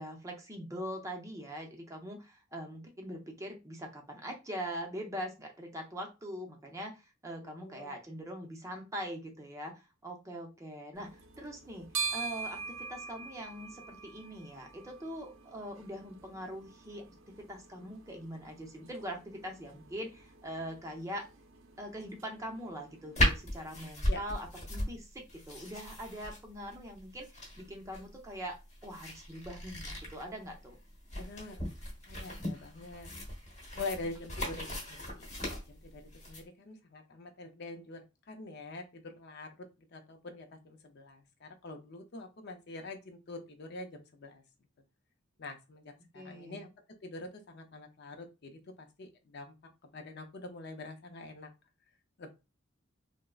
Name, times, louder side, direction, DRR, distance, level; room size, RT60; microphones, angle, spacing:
voice 1, 0.0-21.3 21.8-30.8 46.1-46.6, equal, 15° right, 1 dB, 0.5 m, -42 dB
voice 2, 7.4-7.9 24.1-24.2 31.1-31.6 32.0-33.1 33.7-35.3 35.7-36.0 36.3-39.5 39.9-44.4 45.4-49.5 49.8-51.5 52.2-52.3, left 3 dB, 55° left, 4 dB, 0.5 m, -45 dB
sound 1, 10.9-23.5, right 5 dB, 75° right, 0.5 m, -44 dB
sound 2, 23.1-36.4, left 1 dB, 35° left, 1.1 m, -36 dB
3.5 x 2.0 x 2.3 m, 0.27 s
head